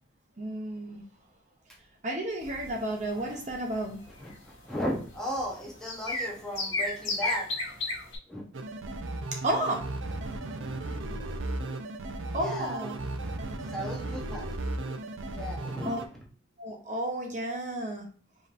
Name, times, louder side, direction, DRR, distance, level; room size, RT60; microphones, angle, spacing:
voice 1, 0.4-1.0 2.0-4.0 9.3-9.9 12.3-13.0 15.8-16.0 16.6-18.1, right 1 dB, 35° right, 1 dB, 0.7 m, -32 dB
sound 1, 2.4-8.2, left 2 dB, 60° left, 1.8 m, -34 dB
voice 2, 4.7-7.5 8.3-8.4 12.3-12.8 13.7-14.5 15.3-16.0, equal, 5° left, -4 dB, 0.8 m, -35 dB
sound 2, 8.5-16.1, right 2 dB, 75° right, 0.5 m, -35 dB
5.1 x 3.0 x 2.5 m, 0.41 s
head